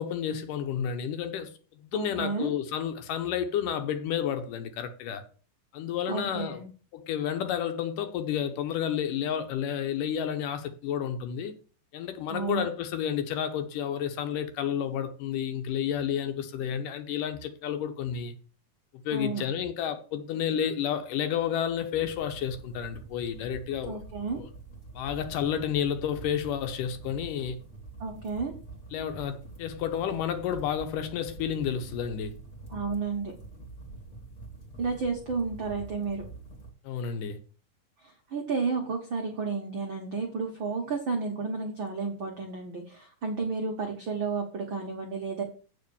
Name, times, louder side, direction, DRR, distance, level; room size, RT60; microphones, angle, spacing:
voice 1, 0.0-1.5 1.8-5.2 5.7-6.6 6.9-11.5 11.9-18.4 19.1-24.0 24.3-24.5 24.9-27.6 28.9-32.3 36.8-37.4, left 9 dB, 75° left, 2.3 m, -31 dB
voice 2, 1.9-2.5 6.1-6.7 12.3-12.7 19.1-19.4 23.9-24.4 28.0-28.5 32.7-33.3 34.8-36.2 38.0-45.4, right 4 dB, 85° right, 1.0 m, -32 dB
sound 1, 22.0-36.7, right 3 dB, 30° left, 2.1 m, -46 dB
8.0 x 5.0 x 6.9 m
omnidirectional pair, 4.2 m